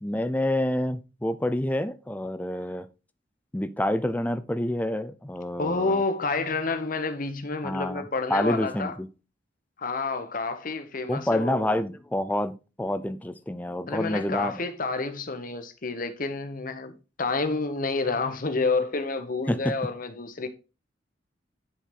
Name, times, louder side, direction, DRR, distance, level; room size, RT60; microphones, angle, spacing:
voice 1, 0.0-2.9 3.5-6.0 7.6-8.0 8.3-9.1 11.1-14.6 19.5-19.7, left 1 dB, 10° left, 0.5 m, -28 dB
voice 2, 5.6-8.9 9.8-11.8 13.9-20.5, left 3 dB, 50° left, 1.1 m, -29 dB
10.0 x 4.7 x 3.7 m
head